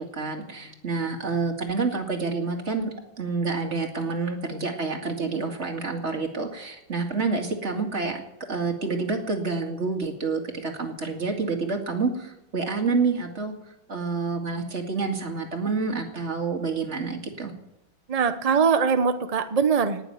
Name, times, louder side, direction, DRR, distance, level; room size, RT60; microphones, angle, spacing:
voice 1, 0.0-8.2 8.5-13.5 13.9-17.5, right 4 dB, 35° right, 3 dB, 2.3 m, -28 dB
voice 2, 18.1-20.0, right 6 dB, 55° right, 9 dB, 0.4 m, -22 dB
19.0 x 7.1 x 9.2 m, 0.92 s
omnidirectional pair, 2.1 m